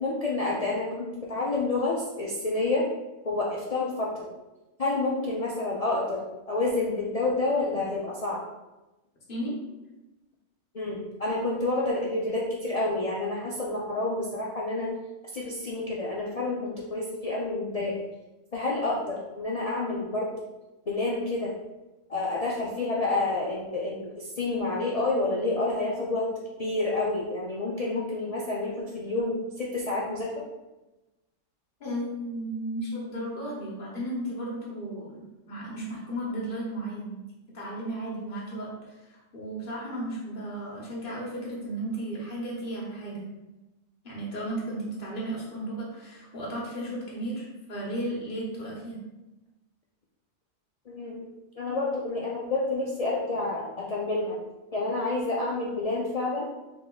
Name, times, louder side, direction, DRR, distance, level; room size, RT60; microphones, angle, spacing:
voice 1, 0.0-2.9 3.2-4.3 4.8-8.4 10.7-14.9 15.3-18.0 18.5-20.3 20.9-21.5 22.1-26.3 26.6-30.3 50.9-51.2 51.6-54.4 54.7-56.5, left 2 dB, 70° left, -5 dB, 0.3 m, -29 dB
voice 2, 31.8-37.2 37.5-43.3 44.0-49.0, right 1 dB, 40° left, -4 dB, 1.3 m, -34 dB
3.5 x 3.0 x 3.8 m, 1.0 s
omnidirectional pair, 1.4 m